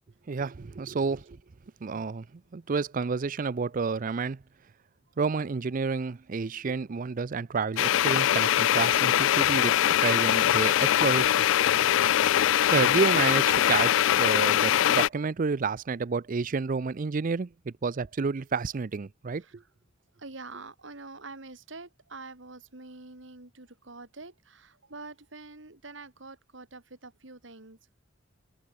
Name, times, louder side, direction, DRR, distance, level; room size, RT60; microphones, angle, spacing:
voice 1, 0.3-1.4 1.8-4.4 5.2-9.7 10.0-11.4 12.7-19.4, right 4 dB, 45° right, 0.5 m, -30 dB
sound 1, 7.8-15.1, left 11 dB, 70° left, 0.3 m, -22 dB
voice 2, 20.2-27.9, right 3 dB, 65° right, 2.4 m, -46 dB
head